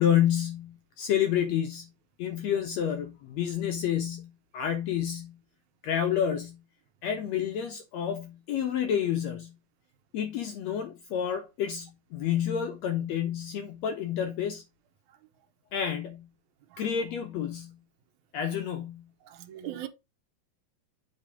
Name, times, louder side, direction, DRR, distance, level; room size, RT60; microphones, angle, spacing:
voice 1, 0.0-1.9 2.2-5.3 5.8-6.6 7.0-9.5 10.1-14.6 15.7-16.3 16.8-17.7 18.3-19.0, left 9 dB, 75° left, 1.6 m, -29 dB
voice 2, 19.3-19.9, right 12 dB, 70° right, 2.1 m, -39 dB
7.6 x 3.9 x 5.0 m
omnidirectional pair, 3.9 m